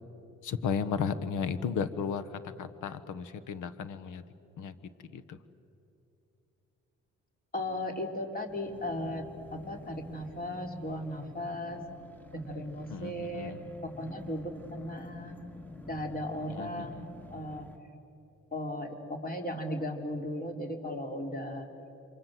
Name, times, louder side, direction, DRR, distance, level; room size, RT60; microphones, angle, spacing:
voice 1, 0.4-4.2 4.6-4.7 5.1-5.4 12.9-13.6 16.6-17.1, left 6 dB, 80° left, 14 dB, 1.3 m, -34 dB
voice 2, 7.5-9.3 9.5-11.8 12.3-13.5 13.8-15.4 15.8-17.0 17.3-17.7 18.5-21.7, left 1 dB, 30° left, 3 dB, 3.7 m, -36 dB
sound 1, 8.5-17.8, left 2 dB, 5° left, 1.8 m, -49 dB
28.5 x 24.5 x 7.7 m, 2.9 s
cardioid pair, 90°, 30 cm